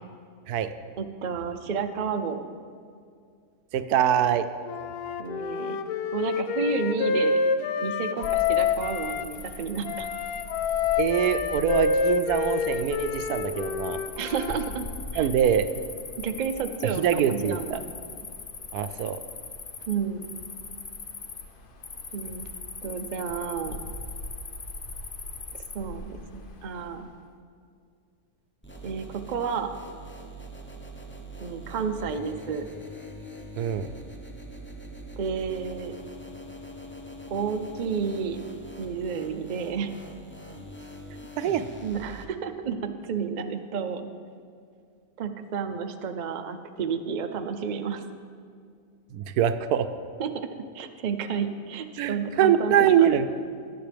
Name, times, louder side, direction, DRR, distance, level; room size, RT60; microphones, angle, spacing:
voice 1, 1.0-2.4 5.2-5.8 6.1-7.4 7.8-10.1 14.2-14.9 15.1-15.3 16.2-17.8 19.9-20.2 22.1-22.5 22.8-23.8 25.7-27.1 28.8-29.7 31.4-32.7 35.2-35.9 37.3-38.4 38.8-39.9 41.8-44.1 45.2-48.0 50.2-50.5 50.7-53.1, right 6 dB, 60° right, 7 dB, 0.5 m, -31 dB
voice 2, 3.7-4.5 11.0-14.0 15.2-15.7 17.0-17.8 18.7-19.2 33.6-33.9 41.4-41.7 49.1-49.9 52.0-53.3, right 9 dB, 80° right, 11 dB, 1.1 m, -23 dB
Wind instrument woodwind instrument, 4.6-9.3 9.9-14.7, left 5 dB, 90° left, 1.2 m, -27 dB
Cricket, 8.2-27.1, left 3 dB, 45° left, 0.8 m, -40 dB
sound 1, 28.6-42.2, equal, 10° left, 0.7 m, -43 dB
19.5 x 8.1 x 3.4 m, 2.2 s
omnidirectional pair, 1.6 m